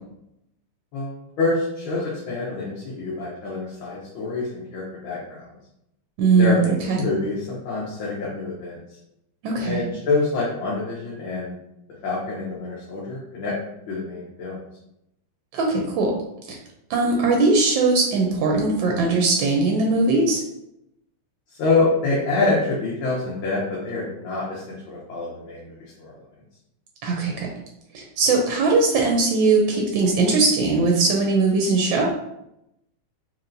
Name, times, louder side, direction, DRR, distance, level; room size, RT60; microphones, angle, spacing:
voice 1, 0.9-5.5 6.4-8.8 9.6-11.5 12.0-13.6 13.9-14.6 21.5-26.2, left 3 dB, 70° left, -5 dB, 1.5 m, -26 dB
voice 2, 6.2-6.6 6.9-7.0 9.4-9.8 15.5-16.1 16.5-16.6 16.9-20.4 27.0-27.5 27.9-32.1, right 3 dB, 70° right, 0 dB, 1.2 m, -20 dB
4.4 x 3.1 x 2.6 m, 0.82 s
omnidirectional pair, 2.4 m